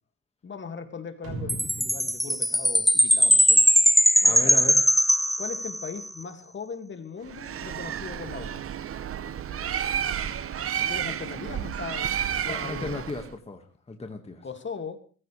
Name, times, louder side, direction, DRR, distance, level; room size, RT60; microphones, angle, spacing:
voice 1, 0.4-3.6 4.2-4.6 5.4-8.6 10.8-12.1 12.4-13.0 14.4-15.0, left 5 dB, 40° left, 7 dB, 2.3 m, -39 dB
sound 1, 1.2-3.8, right 3 dB, 70° right, 6.7 m, -40 dB
Chime, 1.5-6.0, equal, ahead, 0.6 m, -20 dB
voice 2, 4.2-4.8 12.5-14.5, left 3 dB, 20° left, 4 dB, 1.8 m, -35 dB
Bird, 7.3-13.3, right 9 dB, 50° right, 0.9 m, -31 dB
21.0 x 15.5 x 3.4 m, 0.42 s
cardioid pair, 90°, 30 cm